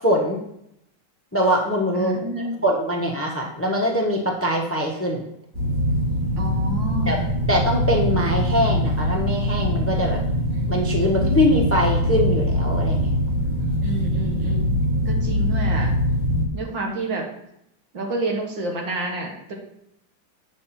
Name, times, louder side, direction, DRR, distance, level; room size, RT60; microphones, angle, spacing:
voice 1, 0.0-0.4 1.3-5.2 7.1-10.2 10.7-13.1, equal, 10° left, 0 dB, 0.8 m, -23 dB
voice 2, 2.0-2.5 6.4-7.2 13.8-14.7 15.1-15.9 16.5-17.3 17.9-19.5, right 2 dB, 70° right, 1 dB, 2.3 m, -29 dB
sound 1, 5.5-16.5, equal, 35° right, 1.7 m, -22 dB
9.1 x 6.1 x 4.3 m, 0.77 s
omnidirectional pair, 2.1 m